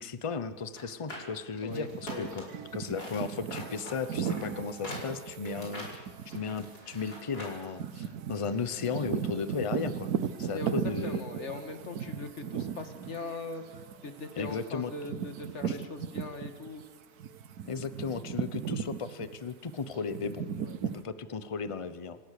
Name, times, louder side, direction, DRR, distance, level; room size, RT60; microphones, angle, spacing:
voice 1, 0.0-2.4 2.7-6.1 6.3-10.1 10.4-11.3 14.4-14.9 15.7-15.8 17.7-20.5 20.8-22.2, left 5 dB, 30° left, 13 dB, 0.7 m, -35 dB
sound 1, 0.7-2.6 2.9-7.6 7.9-8.0, left 1 dB, 75° left, 5.8 m, -43 dB
voice 2, 1.6-2.3 5.6-5.9 10.5-10.7 11.0-16.8 20.6-20.8, left 3 dB, 45° left, 7 dB, 2.1 m, -41 dB
sound 2, 1.7-16.8 17.2-21.0, right 8 dB, 75° right, 1.4 m, -37 dB
26.5 x 17.0 x 6.7 m, 1.5 s
omnidirectional pair, 1.7 m